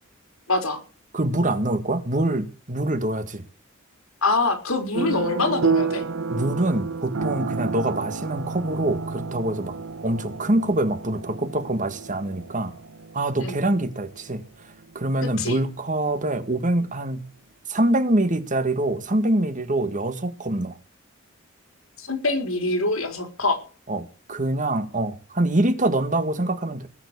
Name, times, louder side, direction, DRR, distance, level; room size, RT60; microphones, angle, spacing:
voice 1, 0.5-0.8 4.2-6.0 13.4-13.6 15.2-15.6 22.0-23.6, left 2 dB, 90° left, 4.4 m, -24 dB
voice 2, 1.1-3.4 6.3-9.8 10.0-12.7 13.1-14.4 15.0-17.3 17.7-20.8 23.9-26.9, right 1 dB, 40° right, 1.9 m, -24 dB
sound 1, 4.9-15.7, right 4 dB, 70° right, 0.9 m, -30 dB
19.5 x 7.2 x 8.3 m
head